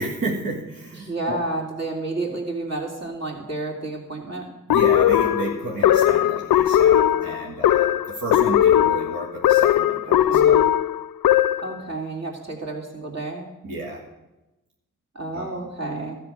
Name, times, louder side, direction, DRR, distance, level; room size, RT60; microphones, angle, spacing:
voice 1, 0.0-1.4 4.7-10.7 13.6-14.1 15.3-15.6, right 1 dB, 80° right, -3 dB, 2.0 m, -31 dB
voice 2, 1.0-4.5 10.3-10.6 11.6-13.5 15.1-16.2, right 2 dB, 50° right, 0 dB, 3.2 m, -30 dB
sound 1, 4.7-11.7, left 11 dB, 85° left, 0.5 m, -18 dB
13.0 x 6.0 x 8.9 m, 0.99 s
cardioid pair, 55°, 34 cm